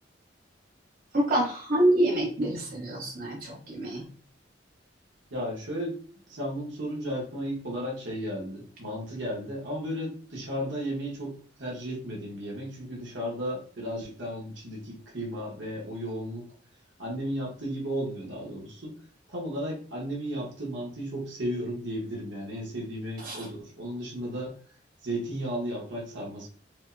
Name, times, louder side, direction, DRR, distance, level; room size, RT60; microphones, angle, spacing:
voice 1, 1.1-4.1 23.2-23.4, right 1 dB, 50° right, -3 dB, 1.1 m, -26 dB
voice 2, 5.3-6.0 6.3-16.5 17.0-18.9 19.3-24.6 25.0-26.5, equal, 80° right, -3 dB, 1.2 m, -34 dB
5.0 x 2.1 x 2.6 m, 0.43 s
head